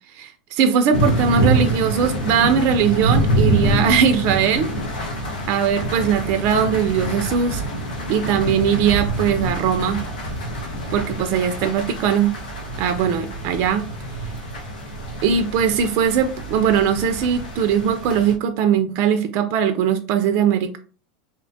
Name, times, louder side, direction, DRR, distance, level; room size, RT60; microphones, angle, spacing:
voice 1, 0.1-4.7 5.5-7.6 8.1-10.0 10.9-12.4 12.8-13.8 15.2-20.8, right 7 dB, 50° right, 8 dB, 0.3 m, -20 dB
sound 1, 0.9-18.4, right 1 dB, 85° left, 0.6 m, -25 dB
2.6 x 2.1 x 2.6 m, 0.38 s
hypercardioid pair, 110°, 4 cm